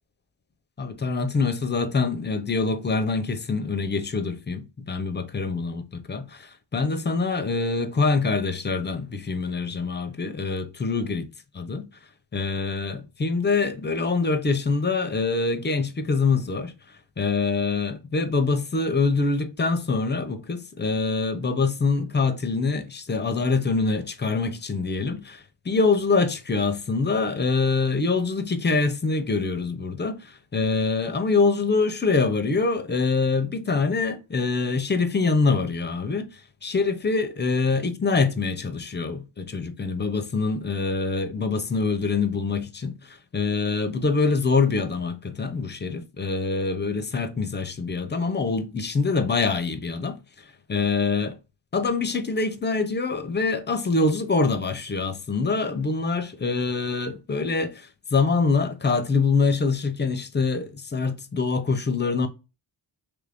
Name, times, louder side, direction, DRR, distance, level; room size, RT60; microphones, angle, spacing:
voice 1, 0.8-11.3 11.5-11.9 12.3-16.7 17.2-50.2 50.7-51.4 51.7-62.3, left 4 dB, 25° left, 0.5 m, -25 dB
3.2 x 2.5 x 3.3 m
wide cardioid pair, 110°, 46 cm